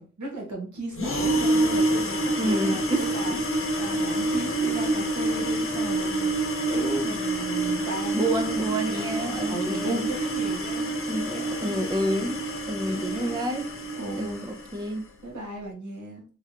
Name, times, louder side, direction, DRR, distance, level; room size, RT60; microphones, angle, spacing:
voice 1, 0.0-3.4 3.7-11.0 11.3-12.0 12.8-13.4 14.0-14.5 15.2-16.2, right 2 dB, 75° right, -1 dB, 1.6 m, -36 dB
sound 1, 0.9-14.9, right 1 dB, 45° left, 0.8 m, -27 dB
voice 2, 2.4-3.4 8.1-10.1 11.1-13.7 14.2-15.1, right 1 dB, 15° right, 6 dB, 0.3 m, -29 dB
3.6 x 3.3 x 2.7 m, 0.38 s
wide cardioid pair, 165°, 30 cm